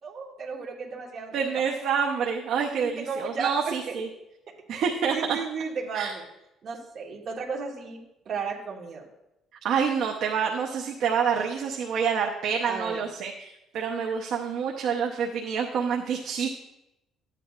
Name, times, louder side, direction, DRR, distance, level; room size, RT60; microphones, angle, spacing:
voice 1, 0.0-1.3 2.8-4.0 4.7-6.2 6.6-9.0 12.6-13.0, right 5 dB, 45° right, -1 dB, 1.5 m, -34 dB
voice 2, 1.3-4.1 4.7-5.4 5.9-6.1 9.6-16.5, right 6 dB, 60° right, 1 dB, 0.8 m, -27 dB
13.0 x 9.1 x 2.4 m, 0.89 s
cardioid pair, 150°, 0 cm